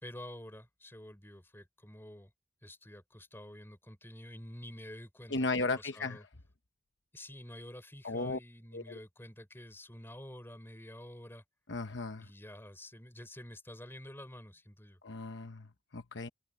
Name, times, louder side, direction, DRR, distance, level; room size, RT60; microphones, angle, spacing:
voice 1, 0.0-2.3 2.6-6.2 7.1-11.4 12.2-15.0, left 1 dB, 10° left, 3.8 m, -49 dB
voice 2, 5.3-6.2 8.0-8.4 8.7-9.0 11.7-12.3 15.0-16.3, left 3 dB, 60° left, 1.0 m, -35 dB
head